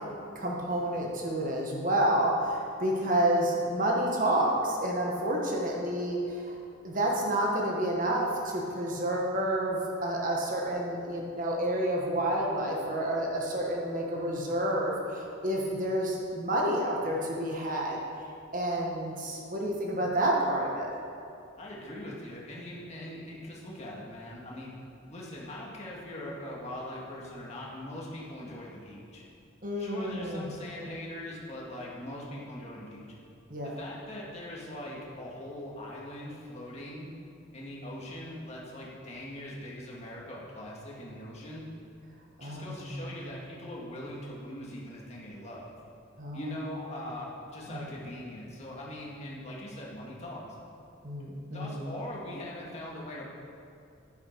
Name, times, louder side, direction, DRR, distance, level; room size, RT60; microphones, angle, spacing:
voice 1, 0.3-6.5 6.8-18.0 18.5-21.0 29.6-30.5 30.8-30.9 33.5-33.7 42.4-43.0 46.2-46.4 47.7-47.8 51.0-51.8, right 1 dB, 40° right, -2 dB, 1.4 m, -29 dB
voice 2, 21.6-24.7 25.1-29.2 29.8-33.1 33.6-37.1 37.5-41.6 42.4-45.7 46.3-50.5 51.5-53.2, left 1 dB, 30° left, -4 dB, 1.9 m, -41 dB
10.5 x 9.7 x 4.6 m, 2.5 s
head